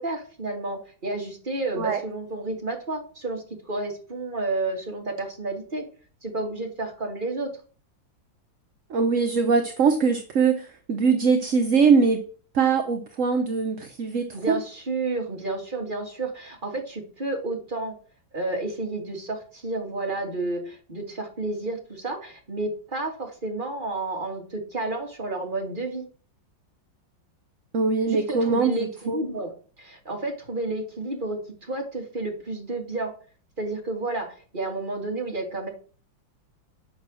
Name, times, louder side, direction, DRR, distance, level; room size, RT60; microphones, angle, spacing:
voice 1, 0.0-5.8 6.2-7.6 14.3-18.0 18.3-26.0 28.1-29.5 29.8-33.1 33.6-35.7, right 2 dB, 25° right, 2 dB, 2.4 m, -31 dB
voice 2, 8.9-12.2 12.5-14.6 27.7-29.2, right 5 dB, 50° right, 6 dB, 1.1 m, -22 dB
10.0 x 5.7 x 6.3 m, 0.40 s
omnidirectional pair, 2.1 m